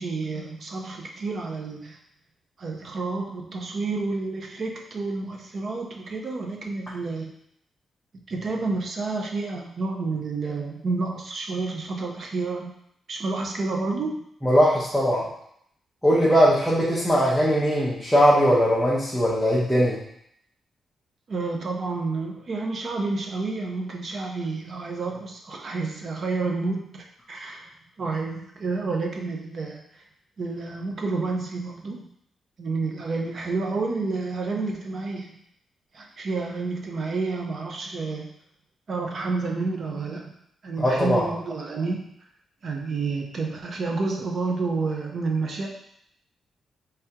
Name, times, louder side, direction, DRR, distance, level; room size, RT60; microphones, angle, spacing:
voice 1, 0.0-2.0 2.6-7.3 8.3-12.7 13.1-14.2 21.3-27.7 28.0-29.8 30.4-32.1 32.6-35.3 35.9-38.3 38.9-40.3 40.6-42.1 42.6-45.7, right 3 dB, 45° right, 1 dB, 0.6 m, -29 dB
voice 2, 14.4-15.3 16.0-20.0 40.8-41.3, equal, ahead, -7 dB, 0.7 m, -20 dB
3.5 x 3.3 x 2.8 m, 0.71 s
wide cardioid pair, 155°, 0 cm